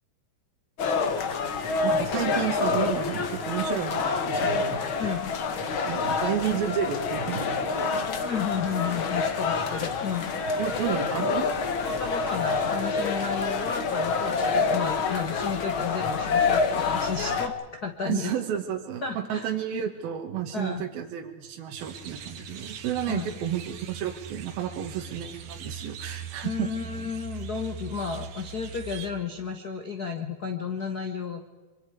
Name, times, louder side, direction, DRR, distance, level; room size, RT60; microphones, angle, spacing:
sound 1, 0.8-17.5, left 4 dB, 55° left, 1.6 m, -27 dB
voice 1, 1.8-4.9 5.9-7.9 10.6-11.5 18.0-26.7, right 10 dB, 85° right, 3 dB, 3.4 m, -31 dB
voice 2, 5.0-5.3 8.2-10.3 11.8-18.3 19.0-19.5 20.5-20.9 23.1-23.3 26.4-31.5, left 6 dB, 70° left, 5 dB, 0.9 m, -32 dB
sound 2, 21.8-29.1, right 6 dB, 65° right, 2.9 m, -41 dB
24.5 x 24.0 x 4.9 m, 1.3 s
omnidirectional pair, 4.2 m